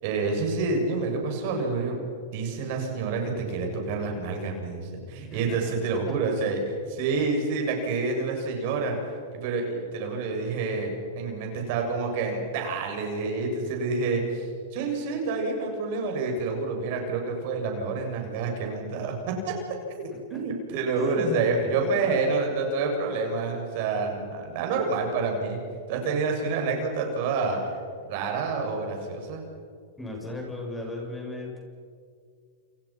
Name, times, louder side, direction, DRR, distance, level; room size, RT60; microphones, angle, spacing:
voice 1, 0.0-2.0 2.3-6.6 6.9-9.0 9.3-19.5 20.0-25.6 25.9-27.6 28.0-29.4, right 4 dB, 55° right, 2 dB, 7.4 m, -28 dB
voice 2, 5.1-5.6 6.0-6.1 20.3-20.4 20.9-21.7 22.0-22.1 30.0-31.6, left 2 dB, 5° left, 0 dB, 7.7 m, -36 dB
29.5 x 29.0 x 6.1 m, 2.1 s
hypercardioid pair, 120°, 0 cm